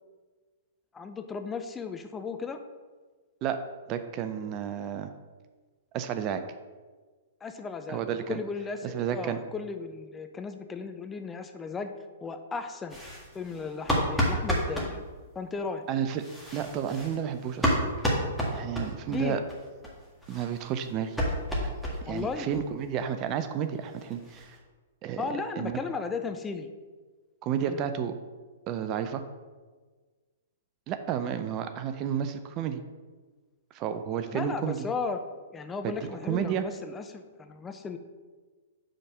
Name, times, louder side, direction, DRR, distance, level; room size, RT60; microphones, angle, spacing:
voice 1, 0.9-2.6 7.4-11.9 12.2-13.0 13.3-15.0 15.3-15.8 19.1-19.4 22.0-22.5 25.2-26.7 27.7-27.8 34.3-35.2 35.5-38.0, left 5 dB, 15° left, 7 dB, 0.5 m, -35 dB
voice 2, 3.9-5.1 5.9-6.4 7.9-8.4 8.9-9.4 15.9-16.2 16.5-17.8 18.5-19.4 20.3-21.2 21.6-24.6 25.0-25.2 25.6-25.7 27.4-28.1 28.7-29.2 30.9-32.8 33.7-34.8 35.8-36.6, right 8 dB, 35° right, 9 dB, 0.5 m, -31 dB
sound 1, 12.9-14.9 16.1-19.2 19.5-19.6 19.8-19.9 20.2-22.3 22.5-22.6 23.0-23.1 23.4-23.5 23.7-24.6, equal, ahead, 1.7 m, -30 dB
5.1 x 4.2 x 6.0 m, 1.4 s
figure-of-eight pair, 115°, 0 cm